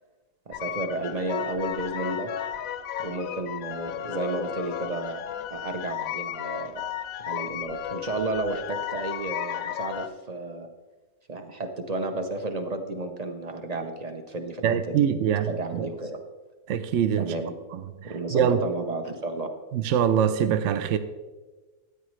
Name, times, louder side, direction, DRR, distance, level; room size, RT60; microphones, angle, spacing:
sound 1, 0.5-10.1, left 11 dB, 75° left, 1.0 m, -34 dB
voice 1, 0.5-2.3 3.0-5.2 5.5-6.9 7.3-10.7 11.3-16.2 17.2-17.6 18.0-19.5, right 2 dB, 40° right, 0.6 m, -32 dB
voice 2, 14.6-15.9 16.7-17.3 17.7-17.8 18.3-18.6 19.7-21.0, right 8 dB, 65° right, 0.8 m, -23 dB
13.0 x 9.6 x 3.2 m
omnidirectional pair, 1.6 m